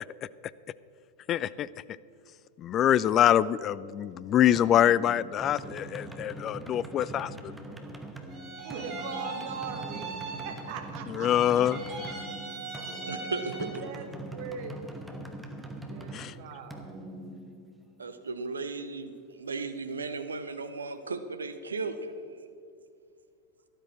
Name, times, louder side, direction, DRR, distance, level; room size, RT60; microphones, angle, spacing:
voice 1, 1.3-1.7 2.6-7.5 11.1-11.8 16.1-16.3, left 11 dB, 30° left, 19 dB, 0.3 m, -25 dB
sound 1, 4.5-18.1, right 1 dB, 5° right, 1.1 m, -42 dB
sound 2, 8.3-10.9 11.2-13.9, right 4 dB, 30° right, 2.5 m, -40 dB
voice 2, 8.6-11.3 12.9-13.1 13.8-15.1 15.9-16.9, right 6 dB, 50° right, 7 dB, 1.3 m, -41 dB
voice 3, 13.1-13.7 18.0-22.1, right 3 dB, 75° right, 10 dB, 0.8 m, -35 dB
12.5 x 12.5 x 4.3 m, 2.5 s
figure-of-eight pair, 90°, 0 cm